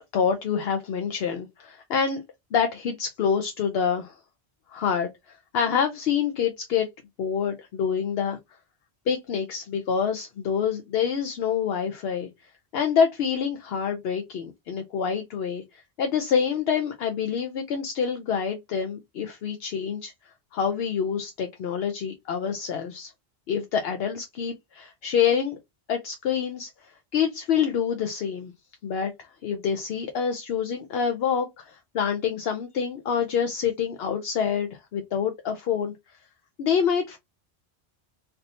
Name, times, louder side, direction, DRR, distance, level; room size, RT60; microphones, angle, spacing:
voice 1, 0.1-2.2 2.5-4.1 4.7-5.1 5.5-6.9 7.2-8.4 9.1-12.3 12.7-20.1 20.5-23.1 23.5-25.6 25.9-26.7 27.1-28.5 28.8-29.1 29.4-35.9 36.6-37.2, left 7 dB, 75° left, 0.8 m, -26 dB
3.3 x 2.7 x 2.5 m
omnidirectional pair, 1.1 m